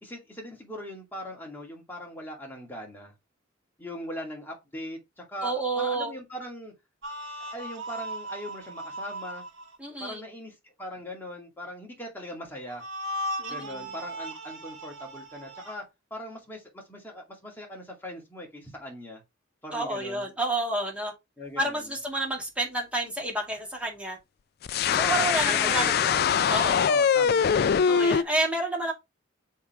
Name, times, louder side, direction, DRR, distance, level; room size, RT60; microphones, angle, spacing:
voice 1, 0.0-3.1 3.8-6.7 7.5-9.4 10.0-12.8 13.5-15.9 16.1-19.2 19.6-20.3 21.4-21.9 25.0-26.1 26.9-27.9, equal, 10° left, 2.4 m, -39 dB
voice 2, 5.4-6.1 9.8-10.3 13.4-13.9 19.7-21.1 21.6-24.2 24.9-26.9 27.9-28.9, right 2 dB, 5° right, 2.1 m, -30 dB
sound 1, 7.0-9.8 12.7-15.8, equal, 75° right, 2.2 m, -37 dB
sound 2, 24.6-28.2, left 7 dB, 50° left, 0.3 m, -23 dB
7.1 x 4.6 x 3.4 m
head